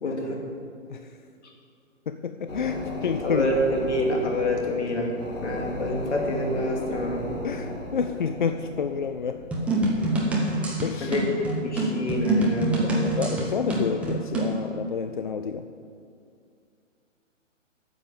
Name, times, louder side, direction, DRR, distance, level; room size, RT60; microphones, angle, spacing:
voice 1, 0.0-0.4 3.2-5.1 5.4-7.3 11.0-13.2, left 1 dB, 60° left, 0 dB, 2.6 m, -27 dB
voice 2, 2.1-3.5 3.8-3.9 7.4-9.4 10.8-11.1 13.2-15.6, left 6 dB, 40° left, 8 dB, 0.4 m, -29 dB
sound 1, 2.5-12.5 12.8-12.9, left 1 dB, 80° left, 2.6 m, -37 dB
sound 2, 9.5-14.6, right 2 dB, 5° right, 0.7 m, -26 dB
9.3 x 7.2 x 8.8 m, 2.3 s
figure-of-eight pair, 140°, 38 cm